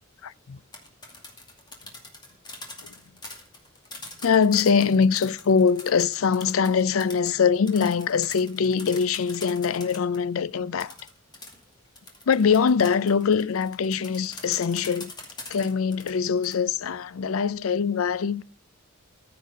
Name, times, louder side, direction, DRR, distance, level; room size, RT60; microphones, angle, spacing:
voice 1, 0.2-0.6 2.8-2.9 4.2-10.9 12.3-15.1 15.5-18.4, left 6 dB, 85° left, 0.5 m, -23 dB
sound 1, 0.6-10.2 10.8-16.5, left 2 dB, 20° left, 2.3 m, -43 dB
14.5 x 6.7 x 5.4 m
head